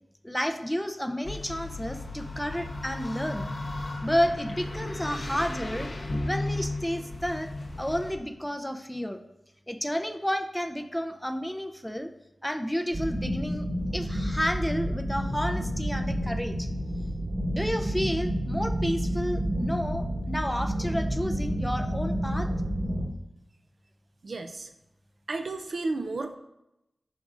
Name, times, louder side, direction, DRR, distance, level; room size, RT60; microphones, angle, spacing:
voice 1, 0.2-3.5 4.0-5.9 6.2-7.5 7.8-9.2 9.7-12.1 12.4-13.7 13.9-16.7 17.5-22.5, equal, 5° left, 7 dB, 0.5 m, -31 dB
sound 1, 1.2-8.1, left 2 dB, 60° left, 1.0 m, -35 dB
sound 2, 12.9-23.1, equal, 40° right, 1.3 m, -30 dB
voice 2, 24.2-24.7 25.3-26.4, right 3 dB, 65° right, 7 dB, 0.5 m, -32 dB
9.3 x 5.2 x 2.5 m, 0.89 s
wide cardioid pair, 60°, 0 cm